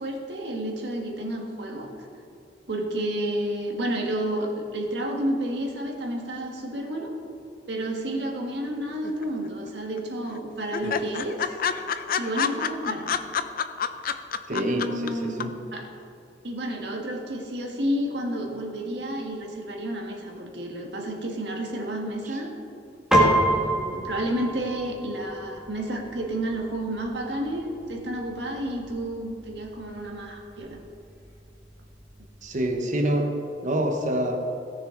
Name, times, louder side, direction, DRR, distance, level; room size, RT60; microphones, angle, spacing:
voice 1, 0.0-1.9 2.7-7.1 7.7-11.6 12.2-13.1 14.5-15.8 16.4-22.5 23.1-30.8, right 1 dB, 70° right, 1 dB, 1.6 m, -31 dB
sound 1, 9.0-9.7 10.0-10.1 10.3-10.4 10.7-15.1 15.4-15.5, left 7 dB, 55° left, 0.4 m, -27 dB
voice 2, 14.5-15.5 32.4-33.3 33.6-34.4, right 1 dB, 45° right, 3 dB, 1.0 m, -27 dB
Piano, 23.1-32.7, right 1 dB, 5° right, 1.8 m, -30 dB
17.5 x 6.6 x 3.8 m, 2.5 s
head